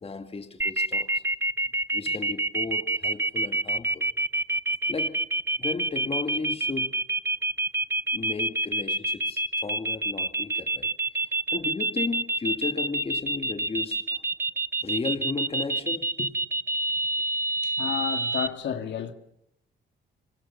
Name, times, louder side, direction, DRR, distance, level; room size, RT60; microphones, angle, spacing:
voice 1, 0.0-1.2 1.9-4.1 4.9-5.2 5.6-7.0 8.1-10.9 11.5-14.2 14.8-16.4, left 4 dB, 30° left, 2.1 m, -34 dB
sound 1, 0.6-18.5, right 2 dB, 10° right, 0.9 m, -27 dB
voice 2, 17.6-19.1, left 9 dB, 65° left, 2.3 m, -31 dB
25.5 x 23.0 x 7.0 m
cardioid pair, 90°, 20 cm